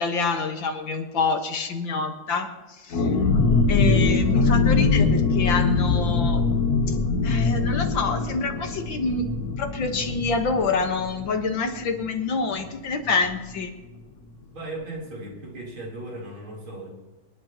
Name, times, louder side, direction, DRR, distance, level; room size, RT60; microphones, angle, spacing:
voice 1, 0.0-3.3 3.7-6.4 6.9-7.0 7.2-9.2 9.6-13.7, left 4 dB, 70° left, 4 dB, 2.1 m, -27 dB
sound 1, 2.9-12.3 12.6-12.7 13.0-13.3, left 4 dB, 55° left, 1.5 m, -23 dB
voice 2, 14.5-16.9, right 2 dB, 90° right, -3 dB, 4.6 m, -36 dB
27.0 x 11.0 x 3.0 m, 1.2 s
omnidirectional pair, 2.2 m